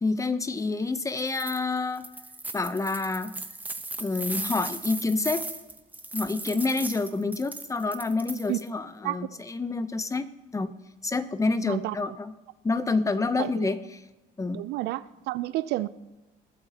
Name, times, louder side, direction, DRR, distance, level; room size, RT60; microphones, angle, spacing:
voice 1, 0.0-2.1 2.5-3.4 4.0-5.4 6.1-10.3 10.5-10.7 11.0-12.3 12.6-14.0 14.4-14.6, left 3 dB, 20° left, 12 dB, 0.7 m, -28 dB
sound 1, 1.1-1.6 2.0-8.7, right 2 dB, 10° right, 1.0 m, -37 dB
voice 2, 11.6-12.0 13.4-13.7 14.5-15.9, right 17 dB, 85° right, 17 dB, 0.5 m, -30 dB
21.0 x 12.0 x 2.9 m, 1.1 s
cardioid pair, 110°, 17 cm